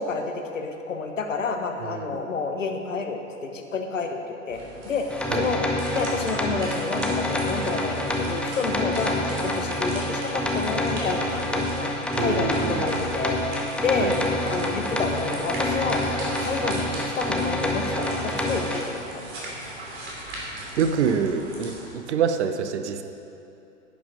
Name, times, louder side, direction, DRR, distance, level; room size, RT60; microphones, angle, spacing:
voice 1, 0.0-4.2 4.5-4.6 4.8-5.0 5.3-5.6 5.9-9.1 9.4-11.9 12.2-13.4 13.8-14.1 14.5-16.0 16.4-19.3, left 4 dB, 75° left, 5 dB, 1.2 m, -29 dB
voice 2, 1.8-2.3 5.3-5.5 12.2-13.1 14.0-14.2 19.4-19.5 20.8-23.0, right 7 dB, 60° right, 8 dB, 0.9 m, -26 dB
sound 1, 4.5-21.9, right 1 dB, 30° right, 2.9 m, -39 dB
sound 2, 5.1-18.8, left 1 dB, 5° left, 0.5 m, -27 dB
11.0 x 8.6 x 5.2 m, 2.8 s
figure-of-eight pair, 105°, 39 cm